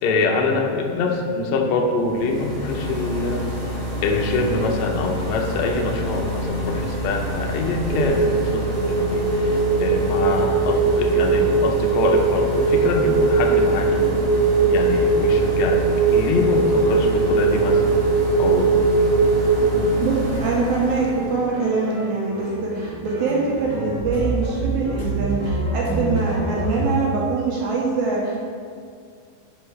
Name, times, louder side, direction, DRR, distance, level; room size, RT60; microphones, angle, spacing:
voice 1, 0.0-3.5 4.0-14.1 14.7-15.8 16.1-18.0 18.4-18.8 19.7-19.9, left 3 dB, 80° left, 1 dB, 1.6 m, -24 dB
sound 1, 2.0-21.4, left 1 dB, 25° right, 1.1 m, -28 dB
sound 2, 7.9-19.9, right 4 dB, 90° right, 2.4 m, -20 dB
sound 3, 20.2-26.9, right 2 dB, 25° left, 0.9 m, -29 dB
voice 2, 20.4-28.5, right 4 dB, 70° right, -4 dB, 2.0 m, -23 dB
9.4 x 5.3 x 3.2 m, 2.2 s
omnidirectional pair, 4.1 m